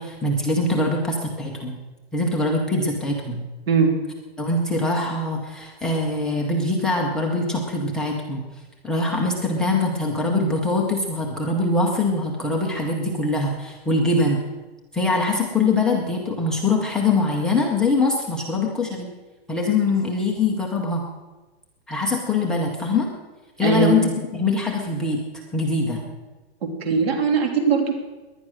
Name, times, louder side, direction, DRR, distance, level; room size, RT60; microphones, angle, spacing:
voice 1, 0.0-1.8 2.1-3.4 4.4-8.4 8.8-14.4 14.9-19.1 19.5-21.0 21.9-23.1 23.6-25.2 25.5-26.0, left 3 dB, ahead, -3 dB, 0.5 m, -23 dB
voice 2, 3.7-4.0 23.6-24.2 26.6-27.9, right 5 dB, 65° right, 4 dB, 3.2 m, -20 dB
18.5 x 11.0 x 6.2 m, 1.2 s
hypercardioid pair, 170°, 32 cm